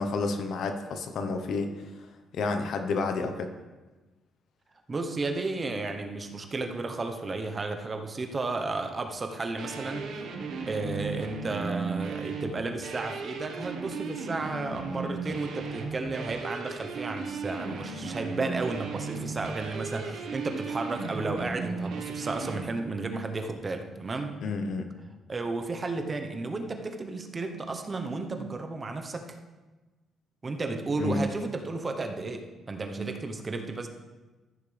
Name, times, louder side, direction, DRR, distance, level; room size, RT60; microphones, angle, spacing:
voice 1, 0.0-1.7 2.3-3.5 24.4-24.9 31.0-31.2, left 3 dB, 70° left, 6 dB, 1.0 m, -30 dB
voice 2, 4.9-10.1 10.7-24.3 25.3-29.4 30.4-33.9, right 3 dB, 30° right, 5 dB, 1.0 m, -33 dB
sound 1, 9.6-22.6, right 4 dB, 80° right, 1.3 m, -36 dB
14.5 x 6.6 x 3.4 m, 1.2 s
cardioid pair, 90°, 0 cm